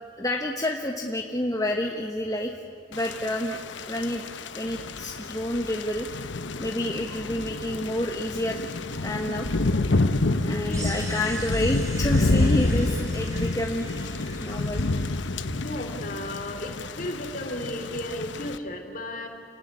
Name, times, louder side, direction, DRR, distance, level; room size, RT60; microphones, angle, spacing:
voice 1, 0.2-2.5 2.9-3.6 3.9-4.2 4.5-6.1 6.6-8.6 8.9-9.5 10.4-13.9 14.4-14.8, left 1 dB, 20° left, 1 dB, 1.3 m, -29 dB
Thunder / Rain, 2.9-18.6, left 2 dB, 70° left, 1.0 m, -28 dB
sound 1, 10.7-15.6, right 1 dB, 15° right, 3.5 m, -42 dB
voice 2, 15.6-19.3, left 1 dB, 45° left, 5 dB, 3.2 m, -34 dB
29.0 x 18.0 x 9.8 m, 2.8 s
head